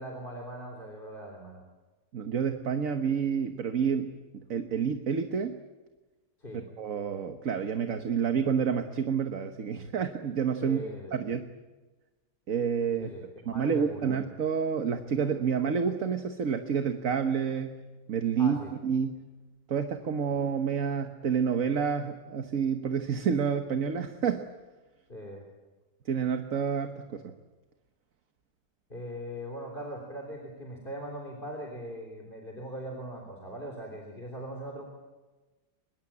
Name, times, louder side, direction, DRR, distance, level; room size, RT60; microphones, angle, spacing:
voice 1, 0.0-1.6 6.4-6.7 10.6-11.2 13.0-14.2 18.4-18.7 25.1-25.5 28.9-34.8, equal, 30° left, 1 dB, 3.6 m, -40 dB
voice 2, 2.1-5.6 6.8-10.8 11.1-11.5 12.5-13.1 13.4-17.8 18.1-19.2 19.7-24.5 26.1-27.3, right 7 dB, 55° right, 7 dB, 1.5 m, -29 dB
25.0 x 22.0 x 8.6 m, 1.2 s
omnidirectional pair, 1.8 m